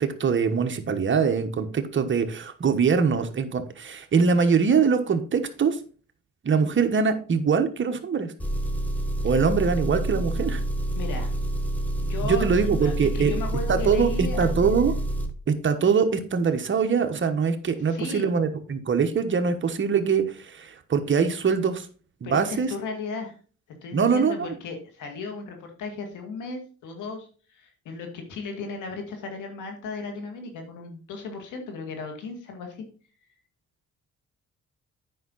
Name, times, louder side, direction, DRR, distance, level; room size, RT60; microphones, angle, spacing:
voice 1, 0.0-5.8 6.4-8.3 9.2-10.6 12.2-13.3 13.7-14.9 15.5-21.9 22.2-22.7 23.9-24.5, right 5 dB, 40° right, 7 dB, 1.2 m, -23 dB
Engine, 8.4-15.3, right 1 dB, 5° left, 1.3 m, -28 dB
voice 2, 10.9-11.3 12.1-14.9 17.9-18.2 22.2-23.3 23.8-32.9, left 4 dB, 85° left, 4 dB, 2.2 m, -35 dB
9.2 x 5.5 x 4.0 m, 0.38 s
cardioid pair, 90°, 30 cm